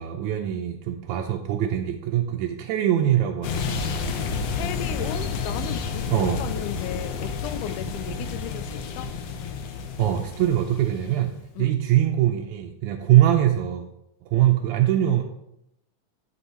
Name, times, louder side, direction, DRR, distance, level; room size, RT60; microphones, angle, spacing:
voice 1, 0.0-4.3 6.1-6.5 10.0-11.3 11.6-13.8 14.3-15.2, right 12 dB, 85° right, 2.0 m, -23 dB
sound 1, 3.4-11.3, left 5 dB, 70° left, 1.7 m, -30 dB
voice 2, 4.5-9.1 11.6-11.8, left 11 dB, 90° left, 2.1 m, -35 dB
11.0 x 5.5 x 4.3 m
omnidirectional pair, 3.5 m